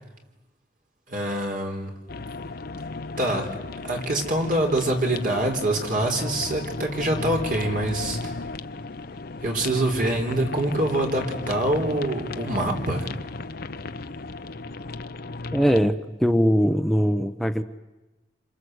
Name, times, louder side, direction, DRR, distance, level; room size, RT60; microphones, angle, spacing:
voice 1, 1.1-1.9 3.2-3.5 3.8-8.3 9.4-13.1, right 1 dB, 50° right, 2 dB, 4.1 m, -25 dB
sound 1, 2.1-15.8, left 3 dB, 60° left, 0.9 m, -35 dB
voice 2, 15.5-17.6, equal, ahead, 9 dB, 0.9 m, -21 dB
27.5 x 26.5 x 8.1 m, 1.1 s
head